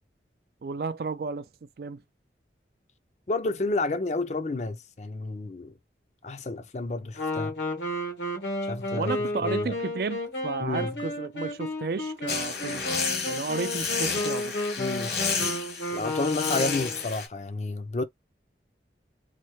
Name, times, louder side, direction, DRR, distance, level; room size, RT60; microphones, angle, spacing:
voice 1, 0.6-1.5 1.8-2.0 8.9-12.9 13.3-14.5, right 4 dB, 55° right, 0.3 m, -33 dB
voice 2, 3.3-5.7 6.2-7.5 8.6-9.7 10.6-11.0 14.8-15.2 15.9-18.0, left 2 dB, 40° left, 0.5 m, -30 dB
Wind instrument woodwind instrument, 7.2-17.1, left 1 dB, 85° left, 1.2 m, -32 dB
sound 1, 12.3-17.3, left 5 dB, 70° left, 1.2 m, -31 dB
3.3 x 2.1 x 3.1 m
head